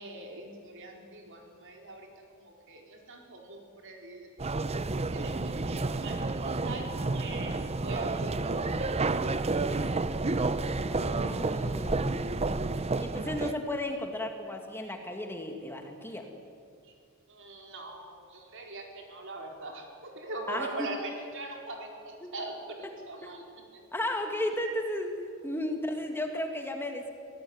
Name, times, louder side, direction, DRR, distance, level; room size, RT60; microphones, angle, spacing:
voice 1, 0.0-2.1 2.4-4.5 5.1-9.9 11.9-12.1 12.7-12.8 17.3-23.4 23.7-23.8, right 2 dB, 60° right, 1 dB, 4.5 m, -42 dB
sound 1, 4.4-13.5, right 3 dB, 30° right, 0.7 m, -30 dB
voice 2, 10.9-12.1 13.0-16.3 20.5-20.9 22.2-22.3 22.8-22.9 23.2-23.4 23.9-27.1, left 1 dB, 10° left, 3 dB, 2.0 m, -34 dB
24.5 x 17.0 x 9.6 m, 2.3 s
head